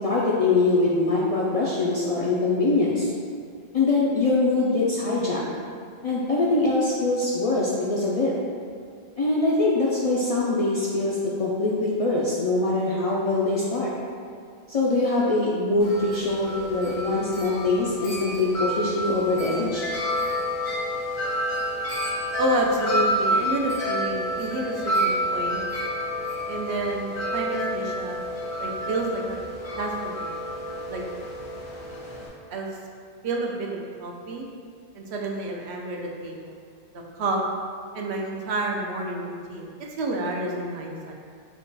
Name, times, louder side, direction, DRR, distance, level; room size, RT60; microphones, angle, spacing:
voice 1, 0.0-3.1 3.7-5.4 6.0-8.3 9.2-13.9 14.7-19.9, left 2 dB, 55° left, -6 dB, 0.4 m, -23 dB
Wind chime, 15.8-32.3, equal, 70° left, 1.3 m, -29 dB
voice 2, 22.4-25.6 26.5-28.2 28.6-29.4 29.8-30.3 30.9-31.0 32.5-32.7 33.2-34.4 34.9-36.6 37.1-37.4 37.9-41.1, right 2 dB, 80° right, 0 dB, 0.9 m, -29 dB
4.7 x 2.2 x 3.9 m, 2.2 s
omnidirectional pair, 1.1 m